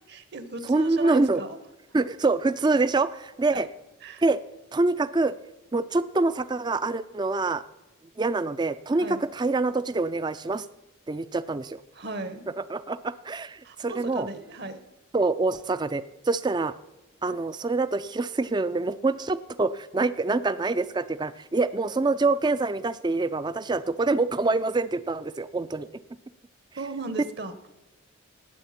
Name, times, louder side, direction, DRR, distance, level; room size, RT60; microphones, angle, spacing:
voice 1, 0.1-1.6 3.5-3.7 4.0-4.2 9.0-9.2 11.9-12.5 13.6-14.8 26.8-27.5, right 2 dB, 50° right, 12 dB, 1.1 m, -36 dB
voice 2, 0.7-1.4 1.9-3.7 4.2-4.4 4.7-5.3 5.7-7.6 8.2-10.7 11.1-11.8 12.6-14.3 15.1-16.7 17.2-25.9, right 3 dB, 20° right, 15 dB, 0.4 m, -25 dB
18.5 x 8.1 x 5.8 m, 1.1 s
head